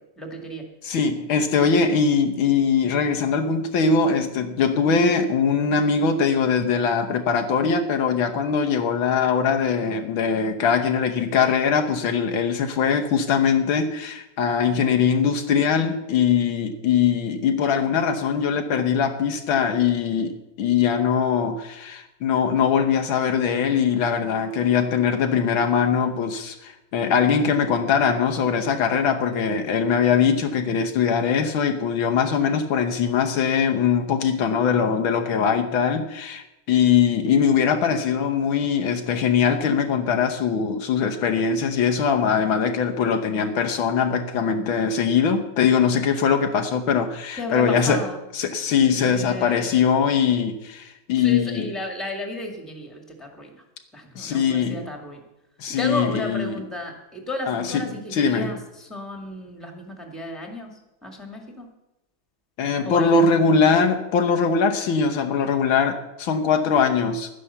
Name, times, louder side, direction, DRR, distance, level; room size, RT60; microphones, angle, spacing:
voice 1, 0.2-0.6 47.4-48.2 49.0-49.8 51.1-53.6 53.9-55.2 55.7-60.7 61.0-61.7 62.9-63.2, left 2 dB, ahead, 3 dB, 2.0 m, -33 dB
voice 2, 0.8-48.0 48.3-51.7 54.2-54.9 55.6-56.6 57.5-58.5 62.6-67.3, left 6 dB, 75° left, 4 dB, 1.7 m, -21 dB
12.0 x 10.0 x 7.0 m, 0.94 s
omnidirectional pair, 2.2 m